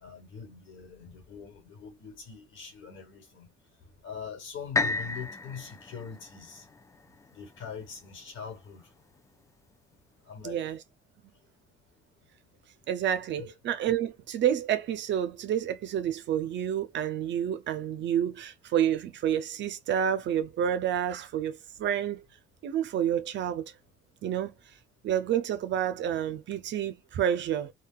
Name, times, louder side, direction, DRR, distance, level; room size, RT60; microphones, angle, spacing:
voice 1, 0.0-3.5 4.0-6.6 7.3-8.8 10.3-10.6 13.4-13.5, left 6 dB, 75° left, 1.2 m, -43 dB
sound 1, 4.7-8.7 9.3-9.4, left 3 dB, 15° left, 0.4 m, -34 dB
voice 2, 10.4-10.8 12.9-22.3 22.6-23.7 24.2-24.5 25.0-27.7, right 10 dB, 65° right, 0.5 m, -29 dB
3.7 x 2.3 x 2.3 m
cardioid pair, 90°, 20 cm